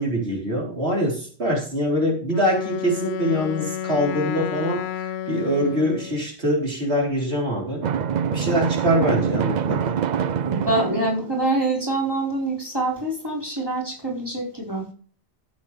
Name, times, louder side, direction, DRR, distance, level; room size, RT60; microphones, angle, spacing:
voice 1, 0.0-7.9 8.3-10.0, equal, 85° right, -1 dB, 4.2 m, -24 dB
Wind instrument woodwind instrument, 2.3-6.3, left 11 dB, 85° left, 0.9 m, -31 dB
Drum, 7.8-11.6, right 7 dB, 55° right, 0.6 m, -25 dB
voice 2, 10.4-14.9, right 2 dB, 20° right, -2 dB, 4.5 m, -25 dB
14.0 x 8.3 x 3.3 m, 0.43 s
omnidirectional pair, 1.1 m